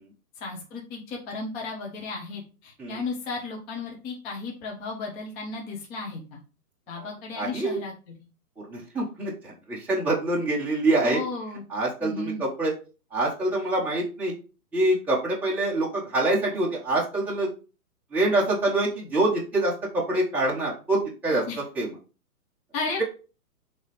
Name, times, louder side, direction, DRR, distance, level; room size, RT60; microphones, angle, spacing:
voice 1, 0.4-6.4 6.9-7.9 11.0-11.6 12.0-12.4 21.5-21.6 22.7-23.0, left 3 dB, 20° left, -1 dB, 1.1 m, -34 dB
voice 2, 7.4-7.8 8.7-11.2 11.7-12.7 13.1-14.3 14.7-17.5 18.1-21.9, right 2 dB, 5° right, -5 dB, 1.2 m, -25 dB
7.2 x 3.2 x 4.9 m, 0.34 s
hypercardioid pair, 145°, 46 cm